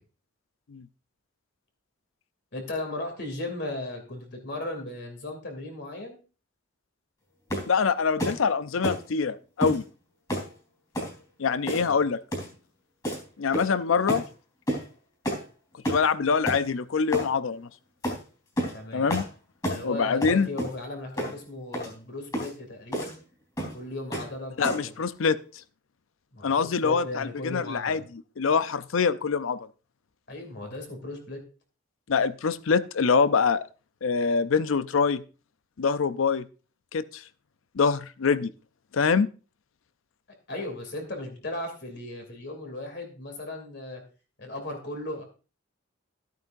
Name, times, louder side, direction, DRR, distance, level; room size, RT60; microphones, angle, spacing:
voice 1, 2.5-6.2 11.7-12.0 18.7-19.0 19.6-23.2 23.7-24.9 26.3-28.0 30.3-31.4 40.5-44.0 44.4-45.2, left 2 dB, 55° left, 4 dB, 2.8 m, -36 dB
sound 1, 7.5-7.7 8.2-8.4 8.8-9.0 9.6-9.8 10.3-10.5 10.9-11.1 11.7-12.0 12.3-12.5 13.0-13.2 13.5-13.8 14.1-14.3 14.7-14.9 15.2-15.4 15.8-16.1 16.4-16.6 17.1-17.3 18.0-18.2 18.6-18.8 19.1-19.3 19.6-19.8 20.2-20.8 21.2-21.4 21.7-21.9 22.3-22.5 22.9-23.1 23.6-23.8 24.1-24.3 24.6-24.9, equal, 20° left, 3.8 m, -30 dB
voice 2, 7.7-9.8 11.4-12.2 13.4-14.2 15.9-17.7 18.9-19.3 19.8-20.5 24.6-25.4 26.4-29.6 32.1-33.6 34.0-35.2 35.8-36.5 36.9-37.2 37.7-38.5 38.9-39.3, left 5 dB, 75° left, 15 dB, 0.5 m, -24 dB
13.5 x 9.1 x 2.6 m, 0.34 s
head